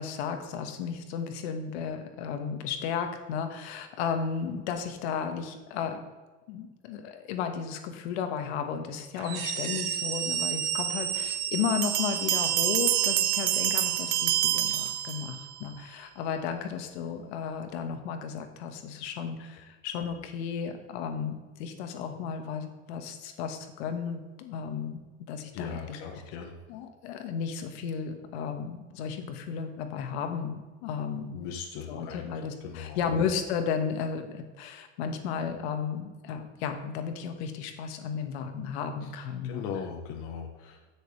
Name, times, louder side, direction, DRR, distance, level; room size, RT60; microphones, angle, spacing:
voice 1, 0.0-6.0 6.5-25.0 25.3-26.0 26.7-31.5 31.9-39.6, left 7 dB, 70° left, 6 dB, 1.4 m, -34 dB
sound 1, 9.2-14.9, right 9 dB, 45° right, 1.1 m, -32 dB
Bell, 11.8-15.6, right 14 dB, 75° right, 0.7 m, -27 dB
voice 2, 25.5-26.5 31.3-32.3 32.6-33.0 39.1-40.9, left 6 dB, 40° left, 1 dB, 1.0 m, -39 dB
15.5 x 6.4 x 3.3 m, 1.3 s
cardioid pair, 180°, 34 cm